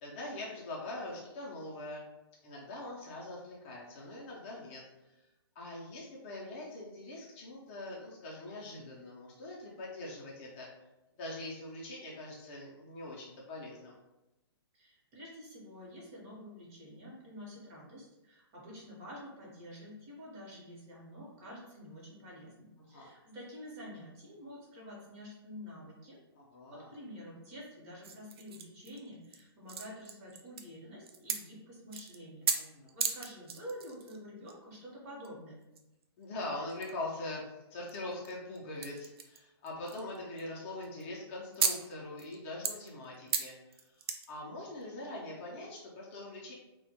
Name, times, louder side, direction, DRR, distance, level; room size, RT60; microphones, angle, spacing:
voice 1, 0.0-2.1 2.4-4.8 5.6-10.7 11.2-14.0 22.9-23.1 26.4-26.9 32.5-32.9 36.2-43.8 44.3-46.5, left 2 dB, 30° left, -4 dB, 0.4 m, -43 dB
voice 2, 14.7-26.2 26.7-32.5 32.9-35.6, equal, 35° right, -4 dB, 0.8 m, -48 dB
sound 1, 28.0-29.4 29.7-30.8 31.0-31.4 31.9-32.2 32.4-32.5 32.9-34.2 34.5-34.6 35.2-35.3 35.6-36.2 36.7-36.9 37.9-39.4 39.7-40.6 40.8-41.0 41.5-41.9 42.2-42.3 42.6-44.3 44.8-44.9, right 6 dB, 70° right, 0.4 m, -35 dB
2.1 x 2.1 x 2.8 m, 0.98 s
hypercardioid pair, 155°, 14 cm